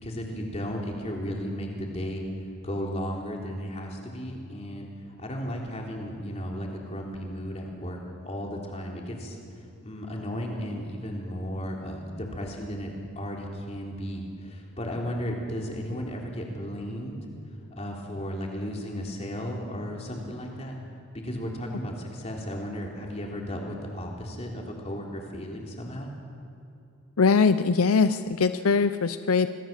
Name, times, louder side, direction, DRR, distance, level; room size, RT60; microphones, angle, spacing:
voice 1, 0.0-2.2 2.6-9.4 9.8-17.2 17.7-20.8 21.2-26.1, equal, 30° left, 0 dB, 3.6 m, -34 dB
voice 2, 27.2-29.5, left 5 dB, 80° left, 12 dB, 0.6 m, -22 dB
27.5 x 21.0 x 7.5 m, 2.7 s
head